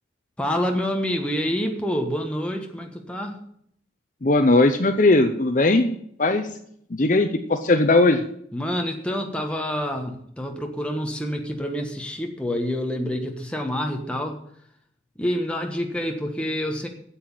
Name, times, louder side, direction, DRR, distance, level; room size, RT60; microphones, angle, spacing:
voice 1, 0.4-3.4 8.5-14.4 15.2-16.9, equal, 5° left, 2 dB, 1.4 m, -27 dB
voice 2, 4.2-5.9 6.2-6.5 6.9-8.2, left 2 dB, 40° left, 7 dB, 0.7 m, -18 dB
8.8 x 7.8 x 8.9 m, 0.68 s
head